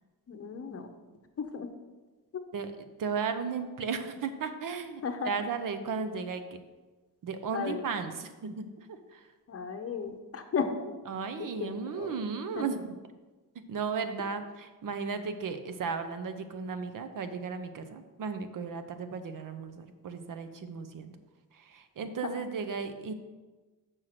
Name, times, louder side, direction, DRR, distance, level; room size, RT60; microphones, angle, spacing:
voice 1, 0.3-0.9 1.4-1.7 5.0-5.3 7.5-7.8 9.5-10.9 11.4-11.7 12.0-12.2 12.6-12.7 22.2-22.3, left 5 dB, 40° left, 6 dB, 0.8 m, -34 dB
voice 2, 3.0-6.6 7.2-8.7 9.1-9.3 11.1-12.9 13.7-21.1 21.5-23.1, right 5 dB, 55° right, 9 dB, 0.7 m, -35 dB
6.4 x 6.4 x 5.8 m, 1.3 s
cardioid pair, 145°, 38 cm